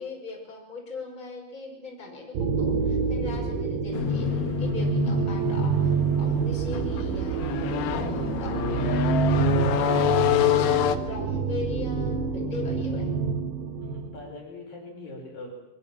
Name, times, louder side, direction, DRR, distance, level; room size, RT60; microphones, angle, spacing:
voice 1, 0.0-5.9 6.2-9.2 9.8-10.6 11.0-13.1, left 3 dB, 10° left, -1 dB, 5.9 m, -39 dB
sound 1, 2.3-14.3, right 6 dB, 65° right, 3.8 m, -27 dB
sound 2, 3.9-11.0, left 12 dB, 65° left, 2.6 m, -27 dB
voice 2, 13.8-15.5, left 2 dB, 45° left, 0 dB, 6.4 m, -42 dB
30.0 x 23.0 x 7.5 m, 0.86 s
omnidirectional pair, 5.9 m